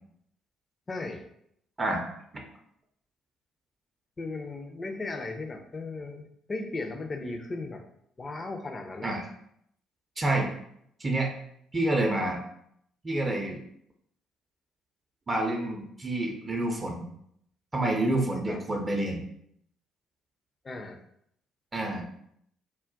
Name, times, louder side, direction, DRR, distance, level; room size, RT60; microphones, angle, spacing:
voice 1, 0.9-1.3 4.2-6.2 6.5-7.8 8.2-9.1 18.5-18.6 20.6-21.0, left 3 dB, 30° left, 5 dB, 0.4 m, -36 dB
voice 2, 10.2-10.5 11.0-11.3 11.7-12.4 13.0-13.6 15.3-17.1 17.7-19.2 21.7-22.0, right 2 dB, 25° right, 1 dB, 0.5 m, -28 dB
2.3 x 2.1 x 3.8 m, 0.71 s
figure-of-eight pair, 45°, 0 cm